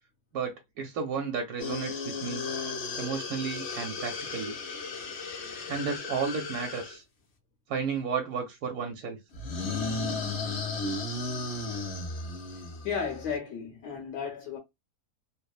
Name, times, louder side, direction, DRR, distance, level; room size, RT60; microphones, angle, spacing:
voice 1, 0.3-2.4 3.0-4.6 5.4-7.0 7.7-9.2, right 6 dB, 70° right, 1.0 m, -33 dB
sound 1, 1.6-7.0 9.3-13.4, left 3 dB, 65° left, 0.6 m, -35 dB
voice 2, 12.8-14.6, left 6 dB, 80° left, 1.2 m, -34 dB
3.0 x 2.0 x 2.3 m
omnidirectional pair, 1.8 m